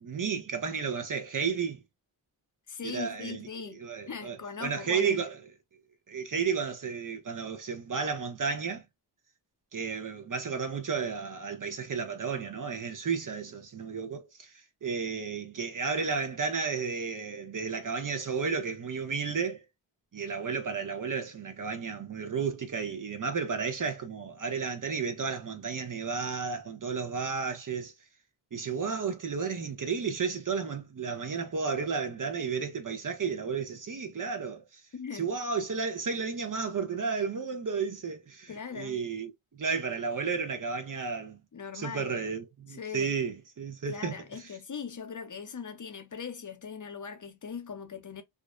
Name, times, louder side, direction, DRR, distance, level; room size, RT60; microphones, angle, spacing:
voice 1, 0.0-1.8 2.8-5.4 6.1-8.8 9.7-19.6 20.1-27.9 28.5-34.8 35.1-41.4 41.7-44.5, right 5 dB, 40° right, 0.7 m, -33 dB
voice 2, 2.7-3.8 4.1-5.2 34.9-35.3 38.5-39.0 41.5-42.2 42.7-43.1 43.9-48.2, left 6 dB, 40° left, 0.7 m, -40 dB
2.5 x 2.1 x 2.4 m
supercardioid pair, 40°, 49 cm